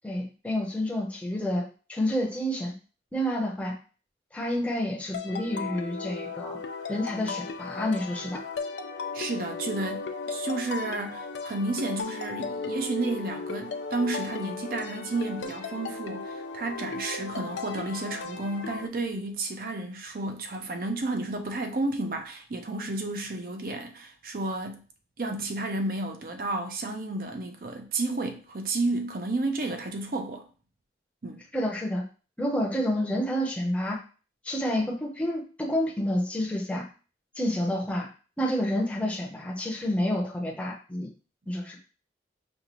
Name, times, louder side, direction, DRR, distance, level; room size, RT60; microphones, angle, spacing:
voice 1, 0.0-2.7 3.1-3.7 4.3-6.6 6.9-8.4 31.5-32.0 32.4-34.0 34.4-36.9 37.4-38.1 38.4-41.1 41.5-41.8, left 1 dB, 5° left, 0.7 m, -29 dB
sound 1, 5.1-18.9, left 4 dB, 90° left, 0.5 m, -36 dB
voice 2, 9.1-24.8 25.2-30.5 31.2-31.4, right 2 dB, 50° right, 0.6 m, -32 dB
5.2 x 2.4 x 3.0 m
head